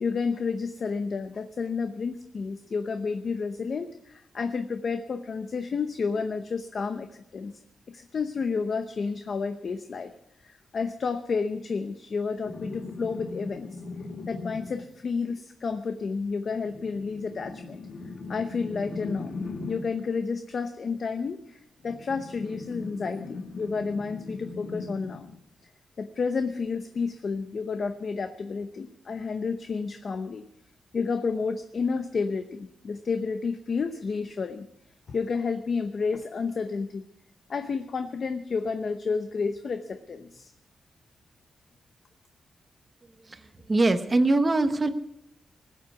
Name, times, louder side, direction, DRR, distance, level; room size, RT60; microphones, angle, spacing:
voice 1, 0.0-7.6 7.9-10.1 10.4-13.8 14.3-17.8 18.3-19.4 19.7-25.3 26.0-30.5 30.9-34.7 35.1-37.0 37.5-40.5, left 5 dB, 45° left, 8 dB, 0.8 m, -31 dB
sound 1, 12.4-14.9 16.5-20.0 21.8-25.4 27.0-27.1, left 3 dB, 60° left, 1.8 m, -39 dB
voice 2, 43.2-44.9, right 2 dB, 25° right, 9 dB, 1.1 m, -23 dB
19.5 x 7.8 x 8.2 m, 0.82 s
wide cardioid pair, 145°, 0 cm